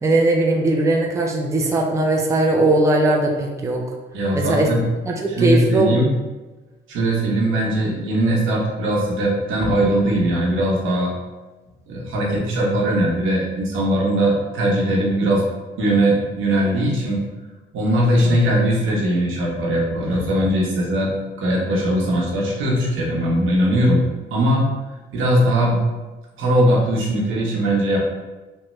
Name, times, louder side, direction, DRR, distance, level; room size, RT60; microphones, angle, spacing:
voice 1, 0.0-3.8 4.3-4.7 5.1-6.0 18.2-18.4, right 2 dB, 15° right, 0 dB, 0.4 m, -19 dB
voice 2, 4.1-4.8 5.3-6.1 6.9-11.1 11.9-15.4 15.8-17.2 17.7-21.1 21.4-24.0 24.3-24.6 25.1-25.8 26.4-28.0, right 1 dB, 80° right, -2 dB, 0.9 m, -20 dB
3.0 x 2.2 x 3.0 m, 1.2 s
cardioid pair, 90°, 20 cm